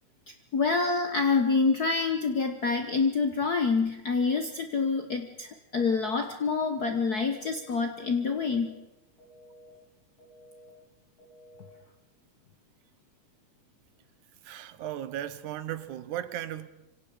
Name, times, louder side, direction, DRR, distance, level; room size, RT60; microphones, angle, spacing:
voice 1, 0.5-8.8, left 4 dB, 65° left, 0.9 m, -27 dB
sound 1, 7.2-7.7 8.2-8.7 9.2-9.7 10.2-10.7 11.2-11.7, equal, 40° left, 7.4 m, -54 dB
voice 2, 14.4-16.7, right 11 dB, 80° right, 2.3 m, -36 dB
26.5 x 25.5 x 5.0 m
omnidirectional pair, 3.5 m